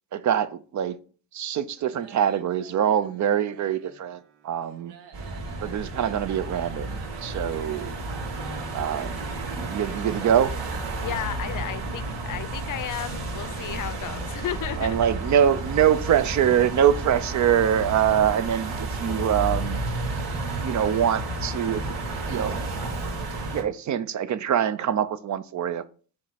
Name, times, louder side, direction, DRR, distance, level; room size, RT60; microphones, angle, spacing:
voice 1, 0.1-1.0 1.3-4.9 5.6-7.9 8.7-9.2 9.5-10.5 14.8-19.8 20.6-21.8 22.3-22.6 23.5-25.8, right 9 dB, 45° right, 0.5 m, -24 dB
sound 1, 1.8-11.2, right 7 dB, 80° right, 1.2 m, -49 dB
sound 2, 5.1-23.6, right 2 dB, 65° right, 2.3 m, -32 dB
voice 2, 11.0-15.0, left 11 dB, 50° left, 0.6 m, -33 dB
6.5 x 3.1 x 5.7 m
cardioid pair, 115°, 41 cm